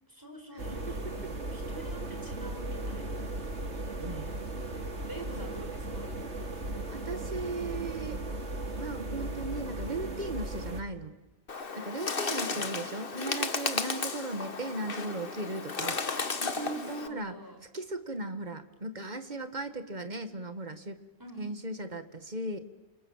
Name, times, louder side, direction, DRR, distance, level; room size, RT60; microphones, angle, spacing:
voice 1, 0.1-3.3 4.0-4.4 5.0-6.2 12.2-12.6 16.5-17.6 21.2-21.6, right 1 dB, 15° right, 5 dB, 5.0 m, -47 dB
sound 1, 0.6-10.8, right 2 dB, 75° right, 3.2 m, -37 dB
voice 2, 0.9-1.4 4.0-4.4 5.1-5.5 6.9-8.2 8.8-11.1 11.8-17.4 17.7-21.0 21.4-22.6, right 2 dB, 40° right, 9 dB, 2.0 m, -37 dB
Bird, 11.5-17.1, left 4 dB, 55° left, 1.7 m, -34 dB
29.5 x 27.0 x 7.5 m, 1.1 s
omnidirectional pair, 1.2 m